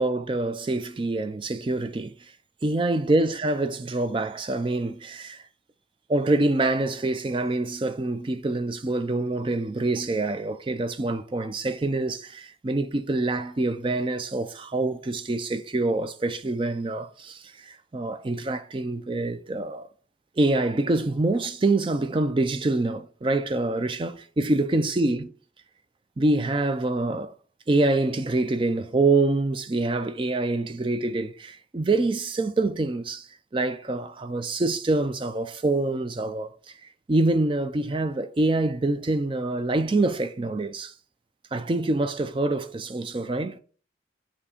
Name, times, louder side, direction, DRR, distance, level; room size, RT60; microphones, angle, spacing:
voice 1, 0.0-2.1 2.6-5.4 6.1-19.9 20.4-25.3 26.2-27.3 27.7-36.5 37.1-40.9 41.5-43.6, right 2 dB, 25° right, 0.4 m, -25 dB
7.3 x 2.8 x 4.9 m
head